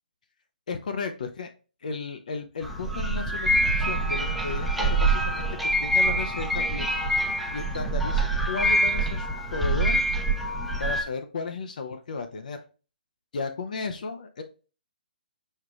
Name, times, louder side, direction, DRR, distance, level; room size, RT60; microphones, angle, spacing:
voice 1, 0.7-1.5 1.8-3.5 3.8-6.9 7.5-10.1 10.8-12.6 13.3-14.4, left 4 dB, 55° left, 6 dB, 0.6 m, -34 dB
sound 1, 2.6-11.0, right 1 dB, ahead, 0.6 m, -25 dB
4.8 x 4.5 x 2.3 m, 0.35 s
figure-of-eight pair, 135°, 5 cm